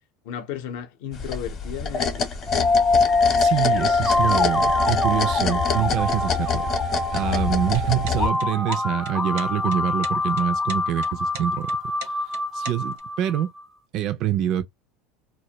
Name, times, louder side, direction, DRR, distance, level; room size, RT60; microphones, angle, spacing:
voice 1, 0.2-2.3, left 9 dB, 70° left, 0.6 m, -34 dB
sound 1, 1.1-8.3, left 6 dB, 40° left, 0.7 m, -27 dB
sound 2, 2.5-13.4, left 2 dB, 10° left, 0.5 m, -24 dB
voice 2, 3.4-11.8 12.2-13.5 13.9-14.6, right 11 dB, 50° right, 0.3 m, -26 dB
sound 3, 7.7-13.0, right 6 dB, 80° right, 0.7 m, -40 dB
2.1 x 2.1 x 2.8 m
supercardioid pair, 135°, 0 cm